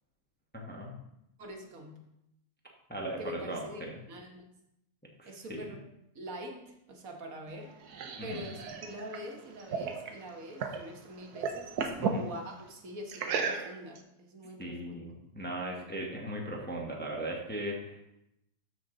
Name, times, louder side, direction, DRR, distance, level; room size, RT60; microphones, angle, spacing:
voice 1, 0.5-0.9 2.9-3.9 5.2-5.6 8.2-8.5 12.0-12.2 14.6-18.1, right 1 dB, 10° left, -1 dB, 1.0 m, -38 dB
voice 2, 1.4-1.9 3.2-4.4 5.3-5.9 6.1-7.7 8.2-15.0, equal, 65° right, 2 dB, 1.5 m, -44 dB
sound 1, 7.5-10.9 11.2-12.2 13.1-14.0, right 5 dB, 80° right, 1.3 m, -35 dB
12.5 x 4.4 x 3.8 m, 0.83 s
omnidirectional pair, 1.6 m